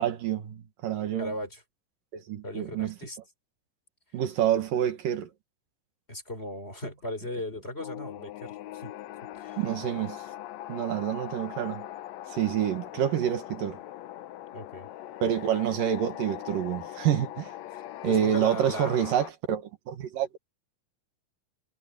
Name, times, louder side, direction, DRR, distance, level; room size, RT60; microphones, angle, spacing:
voice 1, 0.0-1.3 2.1-2.9 4.1-5.3 9.6-10.2 10.7-11.9 12.3-13.8 15.2-17.5 18.0-20.4, right 10 dB, 75° right, 3.2 m, -28 dB
voice 2, 1.2-1.6 2.4-3.2 6.1-8.9 9.3-9.6 14.5-14.9 18.0-18.9, left 1 dB, 15° left, 5.0 m, -37 dB
sound 1, 7.8-19.3, left 13 dB, 75° left, 1.7 m, -41 dB
omnidirectional pair, 4.0 m